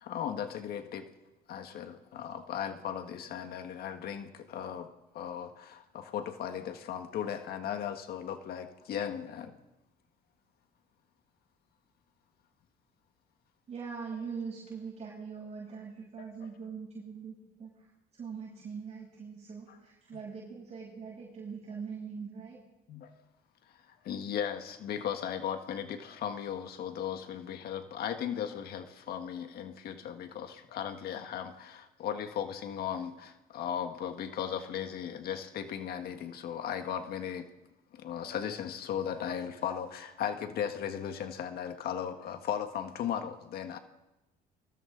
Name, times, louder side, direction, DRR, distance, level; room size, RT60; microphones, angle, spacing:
voice 1, 0.0-1.1 1.5-4.9 5.1-9.5 16.2-16.5 19.7-19.8 20.1-20.2 22.9-23.1 24.0-37.5 37.9-43.8, left 9 dB, 65° left, 7 dB, 1.6 m, -37 dB
voice 2, 13.7-17.7 18.2-22.6, right 5 dB, 40° right, -6 dB, 7.5 m, -42 dB
29.5 x 23.0 x 3.9 m, 1.0 s
cardioid pair, 110°, 17 cm